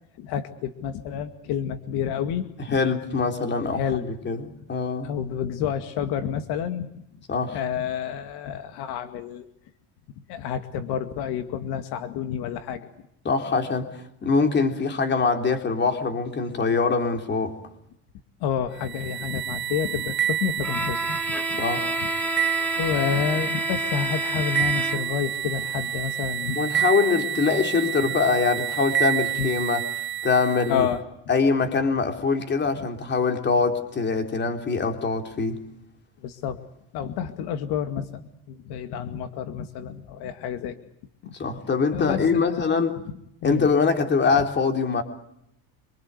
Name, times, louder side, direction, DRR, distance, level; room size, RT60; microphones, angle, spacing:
voice 1, 0.2-2.8 3.7-4.0 5.0-7.0 7.5-9.5 10.3-12.9 18.4-21.6 22.0-22.1 22.8-26.9 29.4-29.5 30.7-31.0 36.2-36.6 36.9-40.8 41.2-41.3 41.9-42.7 43.4-43.7, left 8 dB, 70° left, 9 dB, 2.3 m, -29 dB
voice 2, 2.7-5.1 7.3-7.6 13.3-17.6 21.6-22.0 26.6-29.8 30.2-30.9 31.3-35.6 41.4-43.0 43.4-45.0, left 4 dB, 25° left, 6 dB, 3.7 m, -23 dB
sound 1, 18.8-30.9, right 11 dB, 25° right, 1.1 m, -29 dB
Bowed string instrument, 20.6-25.3, equal, 5° left, 2.1 m, -30 dB
26.5 x 25.0 x 8.2 m, 0.77 s
cardioid pair, 150°, 41 cm